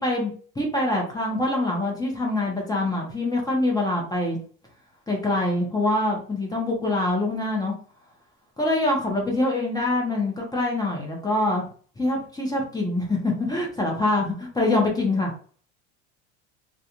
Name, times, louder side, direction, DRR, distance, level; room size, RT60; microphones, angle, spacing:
voice 1, 0.0-4.4 5.1-7.7 8.6-11.6 12.0-15.3, left 2 dB, 10° left, -1 dB, 0.8 m, -24 dB
2.4 x 2.3 x 2.8 m, 0.44 s
supercardioid pair, 100°, 34 cm